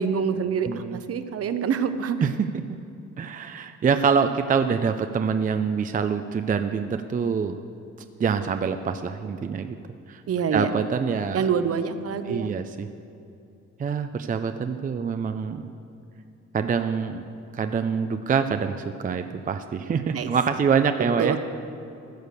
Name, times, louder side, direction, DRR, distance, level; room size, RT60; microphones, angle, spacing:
voice 1, 0.0-2.2 10.3-10.7 11.3-12.5 20.1-20.3 21.2-21.4, right 6 dB, 50° right, 11 dB, 0.8 m, -26 dB
voice 2, 0.7-1.0 2.2-2.3 3.2-7.6 8.2-9.8 10.1-10.2 10.5-11.5 12.3-12.9 13.8-15.7 16.5-17.2 17.5-21.4, right 6 dB, 30° right, 8 dB, 0.4 m, -25 dB
14.0 x 6.6 x 6.7 m, 2.7 s
cardioid pair, 90°, 30 cm